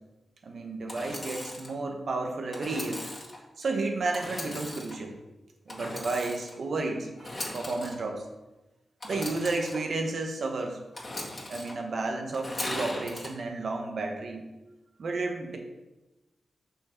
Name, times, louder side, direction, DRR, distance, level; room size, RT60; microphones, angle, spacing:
voice 1, 0.4-3.0 3.6-5.2 5.7-8.3 9.0-10.8 11.5-14.4 15.0-15.6, right 3 dB, 65° right, 3 dB, 1.1 m, -32 dB
Engine / Sawing, 0.9-1.7 2.5-3.4 4.1-5.0 5.7-6.6 7.2-7.9 9.0-9.8 10.9-11.7 12.3-13.3, left 1 dB, 30° left, 1.9 m, -38 dB
6.2 x 5.7 x 4.5 m, 1.1 s
cardioid pair, 80°, 0 cm